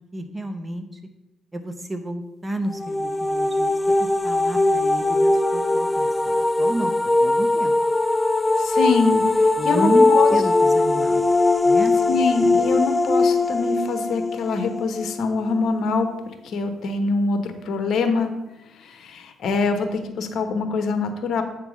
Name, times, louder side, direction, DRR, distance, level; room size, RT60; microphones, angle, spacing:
voice 1, 0.1-1.0 1.5-6.9 7.2-7.7 9.6-11.2 11.6-11.9, right 1 dB, 20° right, 7 dB, 0.7 m, -30 dB
sound 1, 2.7-15.6, left 2 dB, 15° left, 0.4 m, -20 dB
voice 2, 8.6-10.3 12.1-16.1 16.4-18.3 18.8-21.4, left 4 dB, 65° left, 7 dB, 1.0 m, -24 dB
7.9 x 3.6 x 6.1 m, 0.97 s
cardioid pair, 90°, 0 cm